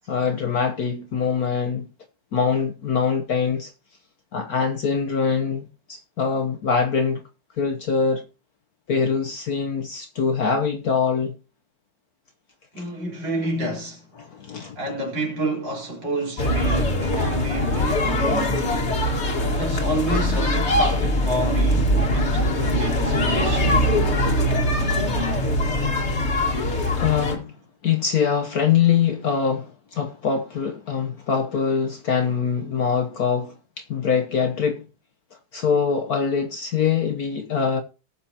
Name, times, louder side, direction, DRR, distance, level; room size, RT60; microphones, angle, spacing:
voice 1, 0.1-1.9 2.3-3.7 4.3-7.2 7.6-8.2 8.9-11.4 14.2-14.8 27.0-34.9 35.5-37.8, left 6 dB, 55° left, 1.2 m, -23 dB
voice 2, 12.7-14.1 14.8-18.7 19.3-23.7, right 1 dB, 60° right, 4.7 m, -29 dB
sound 1, 16.4-27.4, left 1 dB, 35° left, 1.8 m, -22 dB
19.0 x 6.9 x 2.8 m
omnidirectional pair, 2.3 m